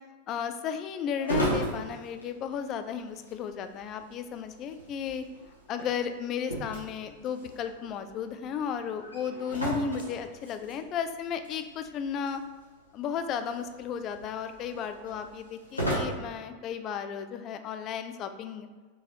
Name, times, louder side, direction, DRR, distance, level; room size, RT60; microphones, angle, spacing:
voice 1, 0.3-5.3 5.7-12.4 12.9-18.7, left 7 dB, 35° left, 8 dB, 0.3 m, -34 dB
sound 1, 1.2-16.0, right 1 dB, 85° left, 1.0 m, -38 dB
4.6 x 3.0 x 2.9 m, 1.4 s
figure-of-eight pair, 90°, 0 cm